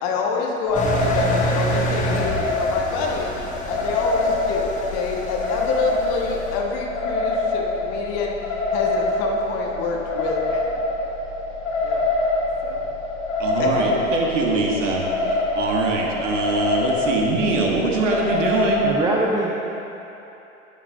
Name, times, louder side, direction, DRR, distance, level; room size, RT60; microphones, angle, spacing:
voice 1, 0.0-3.3 3.7-8.4 8.7-10.7 11.8-12.0 12.6-12.8 13.6-14.0, left 4 dB, 40° left, 0 dB, 1.3 m, -27 dB
sound 1, 0.7-18.9, left 2 dB, 65° left, 1.9 m, -25 dB
Engine, 0.7-6.6, equal, 20° left, 1.3 m, -28 dB
voice 2, 13.4-18.9, right 3 dB, 65° right, -1 dB, 1.6 m, -23 dB
voice 3, 18.8-19.5, right 1 dB, 10° right, -3 dB, 0.6 m, -22 dB
10.0 x 8.3 x 3.9 m, 3.0 s
figure-of-eight pair, 85°, 39 cm